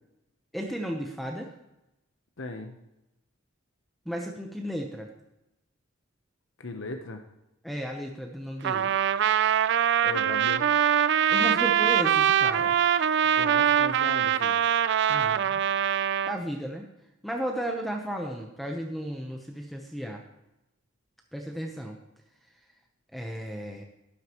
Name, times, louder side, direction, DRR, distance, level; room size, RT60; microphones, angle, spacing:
voice 1, 0.5-1.5 4.1-5.1 7.6-8.9 11.3-12.8 15.1-15.6 16.2-16.9 17.2-20.2 21.3-22.0 23.1-23.8, equal, ahead, 2 dB, 0.9 m, -34 dB
voice 2, 2.4-2.7 6.6-7.2 10.0-10.7 13.3-14.6, left 2 dB, 65° left, 5 dB, 0.9 m, -37 dB
Trumpet, 8.6-16.4, right 9 dB, 60° right, 0.4 m, -23 dB
13.0 x 11.5 x 3.0 m, 0.91 s
head